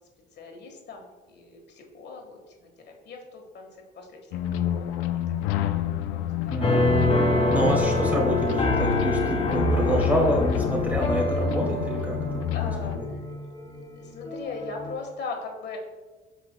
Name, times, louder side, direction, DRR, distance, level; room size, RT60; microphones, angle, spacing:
voice 1, 0.4-2.4 2.8-3.7 3.9-6.2 6.4-6.6 12.5-13.5 14.0-15.8, left 4 dB, 55° left, 2 dB, 1.4 m, -40 dB
sound 1, 4.3-13.0, left 10 dB, 90° left, 0.5 m, -28 dB
voice 2, 6.5-6.9 7.5-12.4 12.9-13.1, right 1 dB, 10° right, -1 dB, 2.1 m, -27 dB
sound 2, 6.6-13.8 14.3-14.9, left 1 dB, 30° left, 1.1 m, -26 dB
15.0 x 5.1 x 2.2 m, 1.2 s
cardioid pair, 105°, 21 cm